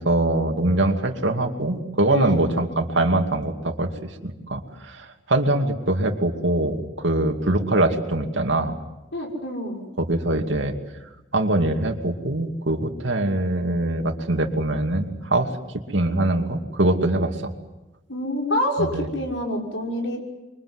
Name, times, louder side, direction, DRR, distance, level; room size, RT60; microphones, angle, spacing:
voice 1, 0.0-3.9 4.2-8.7 10.0-10.7 11.3-15.5 15.9-17.3 18.8-19.1, right 2 dB, 70° right, 4 dB, 2.5 m, -23 dB
voice 2, 2.1-2.4 9.1-9.8 18.1-20.2, left 1 dB, 70° left, 0 dB, 6.0 m, -27 dB
27.0 x 23.5 x 8.0 m, 1.0 s
head